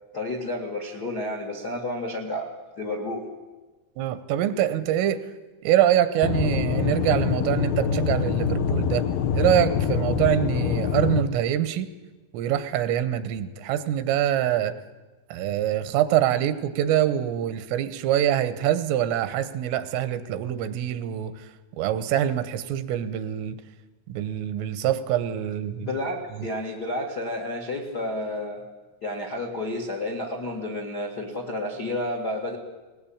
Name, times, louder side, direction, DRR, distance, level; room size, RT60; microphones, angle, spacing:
voice 1, 0.1-3.3 25.8-28.6 29.0-32.6, left 1 dB, 65° left, 3 dB, 0.9 m, -31 dB
voice 2, 4.0-5.3 5.7-9.1 9.4-11.9 12.3-14.8 15.3-21.3 21.8-23.6 24.1-25.9, right 11 dB, 85° right, 13 dB, 3.7 m, -24 dB
Aircraft / Engine, 6.2-11.2, left 7 dB, 80° left, 2.1 m, -25 dB
20.0 x 19.5 x 8.7 m, 1.2 s
omnidirectional pair, 5.7 m